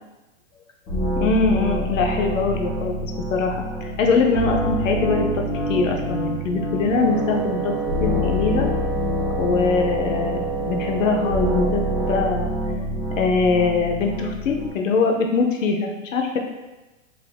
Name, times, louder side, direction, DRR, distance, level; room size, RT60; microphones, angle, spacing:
sound 1, 0.9-14.7, equal, 25° left, 0.9 m, -27 dB
voice 1, 1.2-5.4 5.7-7.7 8.0-8.7 9.4-12.5 12.8-12.9 13.2-16.4, left 4 dB, 75° left, 2 dB, 0.7 m, -22 dB
Wind instrument woodwind instrument, 6.9-12.2, right 8 dB, 25° right, 0.8 m, -29 dB
3.3 x 2.8 x 2.3 m, 1.1 s
hypercardioid pair, 125°, 39 cm